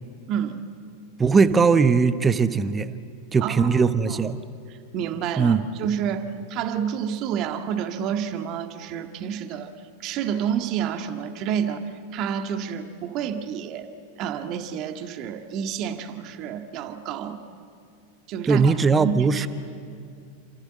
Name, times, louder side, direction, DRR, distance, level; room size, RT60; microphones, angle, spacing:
voice 1, 0.3-0.6 3.4-3.8 4.1-4.2 4.9-6.2 6.5-9.7 10.0-11.8 12.1-13.9 14.2-17.4 18.3-19.5, right 8 dB, 40° right, 7 dB, 1.8 m, -29 dB
voice 2, 1.2-2.9 3.3-4.4 5.4-5.7 18.5-19.5, right 5 dB, 15° right, 13 dB, 1.0 m, -19 dB
29.0 x 26.0 x 7.9 m, 2.4 s
figure-of-eight pair, 90°, 0 cm